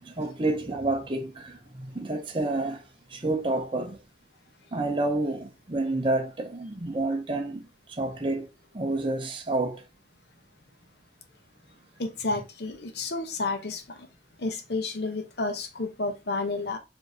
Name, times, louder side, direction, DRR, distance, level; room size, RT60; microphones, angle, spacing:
voice 1, 0.0-2.8 3.1-4.0 4.7-8.5 8.7-9.8, right 2 dB, 30° right, 0.6 m, -29 dB
voice 2, 12.0-14.1 14.4-16.8, left 3 dB, 60° left, 0.7 m, -31 dB
5.0 x 2.7 x 2.7 m
head